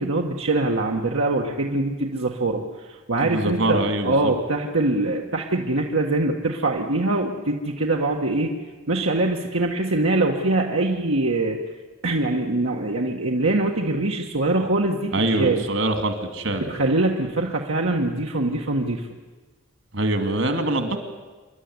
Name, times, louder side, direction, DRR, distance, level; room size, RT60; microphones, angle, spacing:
voice 1, 0.0-8.5 8.9-11.6 12.0-15.6 16.6-19.1, right 2 dB, 80° right, 0 dB, 1.5 m, -23 dB
voice 2, 3.2-4.3 15.1-16.7 19.9-21.0, right 1 dB, 65° right, 7 dB, 2.5 m, -24 dB
27.5 x 12.0 x 9.7 m, 1.3 s
head